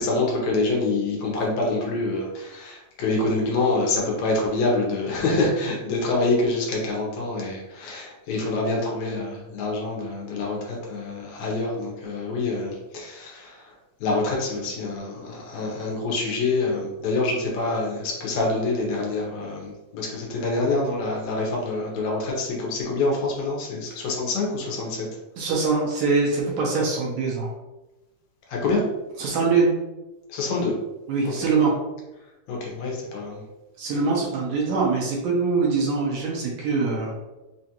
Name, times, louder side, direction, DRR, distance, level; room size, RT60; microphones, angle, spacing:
voice 1, 0.0-13.7 14.0-25.1 28.5-28.8 30.3-30.8 31.2-31.3 32.5-33.4, left 2 dB, 75° left, -2 dB, 2.0 m, -26 dB
voice 2, 25.4-27.5 29.2-29.7 31.1-31.7 33.8-37.1, right 4 dB, 75° right, -2 dB, 1.8 m, -23 dB
5.1 x 2.4 x 2.8 m, 1.0 s
omnidirectional pair, 3.4 m